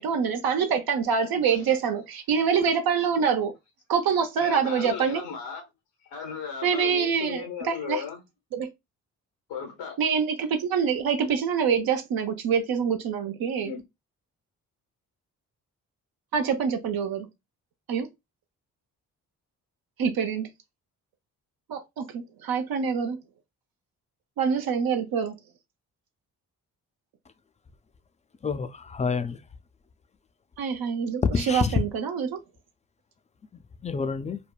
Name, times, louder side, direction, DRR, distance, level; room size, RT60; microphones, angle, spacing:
voice 1, 0.0-3.5 3.9-5.2 6.6-8.0 8.5-8.7 10.0-13.7 16.3-17.3 17.9-18.1 20.0-20.5 21.7-23.2 24.4-25.3 30.6-32.4, right 6 dB, 60° right, 0.6 m, -25 dB
voice 2, 4.4-5.6 6.0-8.2 9.5-10.0 13.6-13.8, left 6 dB, 80° left, 1.1 m, -35 dB
voice 3, 28.4-29.4 31.3-31.8 33.5-34.4, left 5 dB, 20° left, 0.3 m, -28 dB
3.4 x 2.1 x 2.3 m
hypercardioid pair, 40°, 42 cm